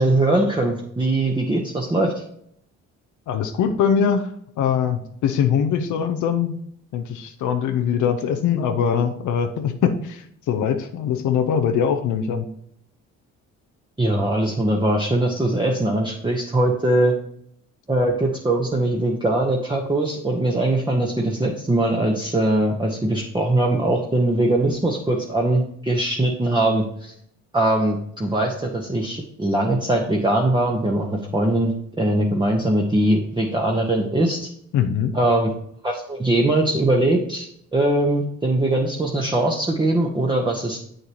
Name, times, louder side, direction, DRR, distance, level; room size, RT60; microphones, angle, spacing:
voice 1, 0.0-2.2 14.0-17.1 17.9-27.1 27.5-34.5 35.1-35.5 35.8-40.8, right 1 dB, 15° right, -1 dB, 1.1 m, -21 dB
voice 2, 3.3-4.3 4.6-6.6 6.9-12.5 34.7-35.2, left 7 dB, 80° left, 7 dB, 0.8 m, -22 dB
7.7 x 6.6 x 2.9 m, 0.69 s
cardioid pair, 90°, 30 cm